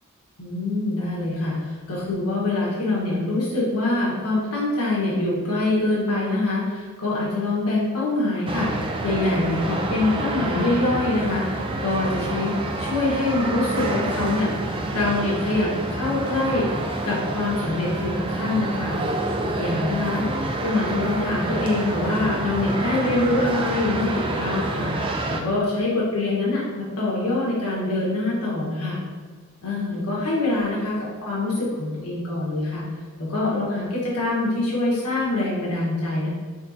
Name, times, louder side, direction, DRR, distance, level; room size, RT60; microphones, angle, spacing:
voice 1, 0.4-14.5 14.9-16.7 17.0-19.0 19.4-20.2 20.6-24.9 25.3-29.0 29.6-31.0 31.2-32.9 33.2-36.3, left 2 dB, 85° left, -6 dB, 1.3 m, -24 dB
sound 1, 8.5-25.4, right 2 dB, 25° right, 0.3 m, -28 dB
4.3 x 4.0 x 2.7 m, 1.5 s
head